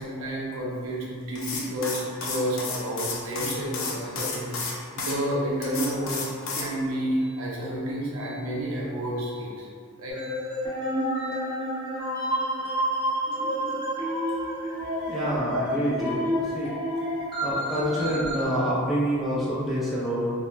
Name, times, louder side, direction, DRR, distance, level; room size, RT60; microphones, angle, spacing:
voice 1, 0.0-6.2 6.5-9.7 10.0-10.6 11.2-11.4 12.2-12.4 13.2-13.8 17.8-17.9 18.2-18.3, right 1 dB, 65° right, -5 dB, 0.6 m, -31 dB
sound 1, 1.3-5.2 5.6-6.7, left 4 dB, 60° left, 0.4 m, -32 dB
sound 2, 10.1-18.4, equal, 20° right, 0.9 m, -29 dB
voice 2, 15.1-16.7 17.4-20.3, equal, ahead, -9 dB, 0.4 m, -27 dB
2.4 x 2.1 x 3.0 m, 2.1 s
head